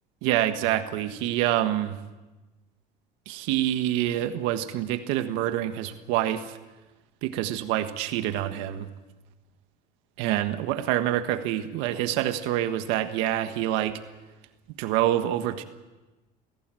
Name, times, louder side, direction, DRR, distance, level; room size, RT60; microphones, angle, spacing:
voice 1, 0.2-2.0 3.3-6.6 7.2-8.9 10.2-14.0 14.7-15.6, right 13 dB, 80° right, 9 dB, 1.5 m, -26 dB
26.5 x 17.0 x 7.7 m, 1.1 s
cardioid pair, 120°, 19 cm